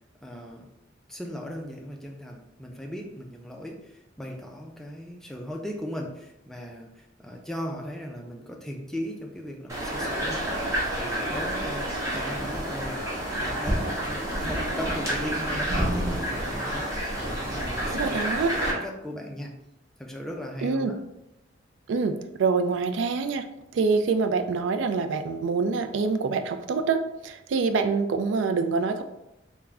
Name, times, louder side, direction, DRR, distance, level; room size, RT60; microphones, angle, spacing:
voice 1, 0.2-0.7 1.1-18.2 18.5-19.5 20.0-20.9, equal, ahead, 0 dB, 0.4 m, -38 dB
sound 1, 9.7-18.7, right 1 dB, 15° right, 0.9 m, -29 dB
voice 2, 17.9-18.5 20.6-20.9 21.9-23.5 23.7-29.0, right 4 dB, 75° right, 7 dB, 0.3 m, -25 dB
3.5 x 2.1 x 3.4 m, 0.89 s
head